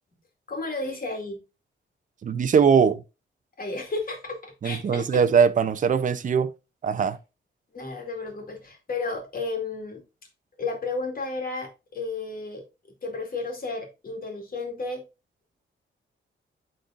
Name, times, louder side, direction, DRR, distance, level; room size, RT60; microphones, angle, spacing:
voice 1, 0.5-1.4 3.6-5.2 7.7-10.0 10.6-12.6 13.0-15.0, left 3 dB, 45° left, 2.3 m, -32 dB
voice 2, 2.2-3.0 4.6-6.5 6.8-7.2, right 6 dB, 40° right, 0.5 m, -21 dB
11.5 x 3.9 x 2.4 m
wide cardioid pair, 130°, 21 cm